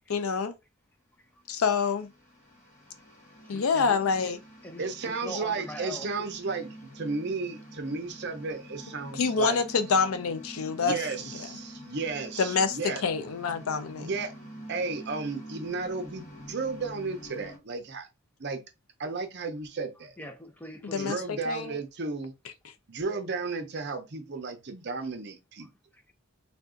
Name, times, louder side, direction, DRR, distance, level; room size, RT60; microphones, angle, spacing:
voice 1, 0.1-0.5 1.5-2.1 3.5-4.4 9.1-11.0 12.4-14.1 20.9-21.8, left 5 dB, 90° left, 0.6 m, -27 dB
sound 1, 2.0-17.6, equal, 35° left, 1.2 m, -47 dB
voice 2, 3.4-4.3 4.6-6.3 20.2-21.3 25.6-26.1, left 1 dB, 10° left, 0.6 m, -43 dB
voice 3, 4.8-6.7 6.9-9.6 10.8-13.0 14.0-14.3 14.7-18.1 18.4-18.6 19.0-20.2 21.0-22.3 22.9-25.7, right 4 dB, 55° right, 0.7 m, -33 dB
3.4 x 2.6 x 3.7 m
head